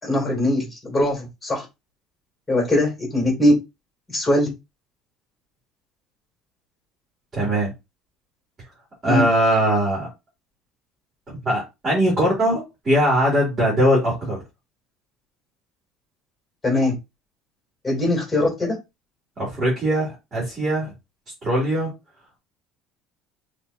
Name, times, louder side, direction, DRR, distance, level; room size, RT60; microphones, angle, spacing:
voice 1, 0.0-1.6 2.5-3.5 4.1-4.5 9.1-9.2 16.6-16.9 17.8-18.8, left 1 dB, 10° left, 2.8 m, -21 dB
voice 2, 7.3-7.7 9.0-10.1 11.4-14.4 19.4-20.9 21.4-21.9, equal, 20° right, 2.8 m, -21 dB
5.8 x 3.1 x 2.7 m
cardioid pair, 155°, 0 cm